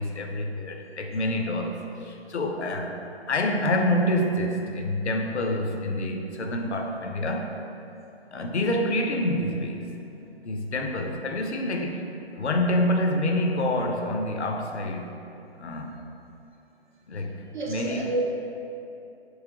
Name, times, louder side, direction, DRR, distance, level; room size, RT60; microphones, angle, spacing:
voice 1, 0.0-3.0 3.3-7.5 8.3-9.9 10.4-12.1 12.3-15.1 15.6-15.9 17.1-17.4 17.7-18.0, left 1 dB, 85° left, 3 dB, 0.5 m, -27 dB
voice 2, 17.5-18.3, right 2 dB, 50° right, -2 dB, 0.5 m, -29 dB
3.1 x 2.9 x 3.6 m, 2.7 s
figure-of-eight pair, 135°, 33 cm